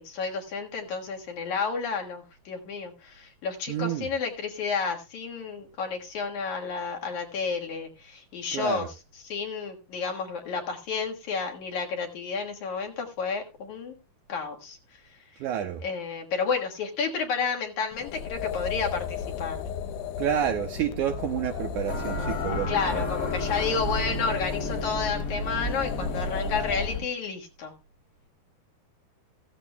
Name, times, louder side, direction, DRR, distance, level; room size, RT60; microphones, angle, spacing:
voice 1, 0.0-8.9 9.2-14.0 14.3-14.8 15.8-19.6 22.7-27.7, left 5 dB, 60° left, 2 dB, 2.6 m, -31 dB
voice 2, 3.7-4.1 8.5-8.9 15.4-15.8 20.2-23.1, right 10 dB, 75° right, 6 dB, 1.9 m, -29 dB
sound 1, 17.9-27.1, left 8 dB, 80° left, 2.5 m, -34 dB
sound 2, 21.9-27.0, left 1 dB, 30° left, 1.4 m, -32 dB
15.0 x 14.5 x 2.2 m, 0.29 s
omnidirectional pair, 4.3 m